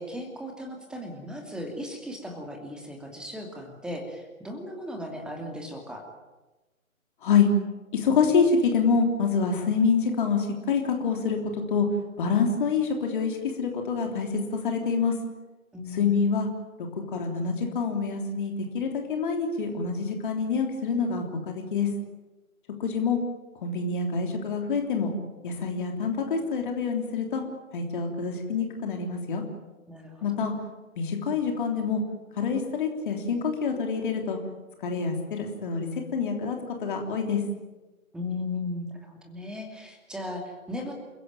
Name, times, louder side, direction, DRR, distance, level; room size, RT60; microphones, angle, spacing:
voice 1, 0.0-6.0 15.7-16.3 29.9-30.5 38.1-40.9, left 1 dB, ahead, 2 dB, 2.6 m, -37 dB
voice 2, 7.9-11.9 12.2-15.1 15.9-16.5 17.1-21.9 22.8-23.2 23.6-25.1 25.4-27.4 27.7-29.4 30.2-30.5 31.0-32.0 32.4-34.4 34.8-37.4, left 5 dB, 35° left, 3 dB, 3.4 m, -26 dB
29.0 x 16.0 x 9.0 m, 1.1 s
figure-of-eight pair, 135°, 41 cm